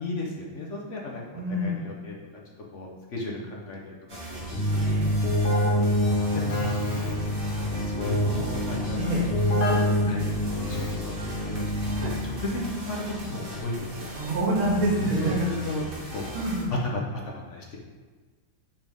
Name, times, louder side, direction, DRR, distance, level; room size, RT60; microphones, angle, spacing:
voice 1, 0.0-2.4 2.7-3.9 4.3-6.7 7.2-9.2 9.9-11.7 12.0-14.1 15.0-15.9 16.1-16.3 16.7-17.0 17.3-17.8, left 2 dB, 60° left, -2 dB, 0.7 m, -35 dB
voice 2, 1.3-1.9 4.8-5.1 9.0-9.3 11.9-12.1 14.1-15.3 16.3-16.8, right 1 dB, 80° right, -4 dB, 2.4 m, -27 dB
sound 1, 4.1-16.7, right 1 dB, 35° right, 1.0 m, -38 dB
Keyboard (musical), 4.5-12.4, equal, 80° left, 2.3 m, -26 dB
9.6 x 3.5 x 3.5 m, 1.4 s
omnidirectional pair, 2.3 m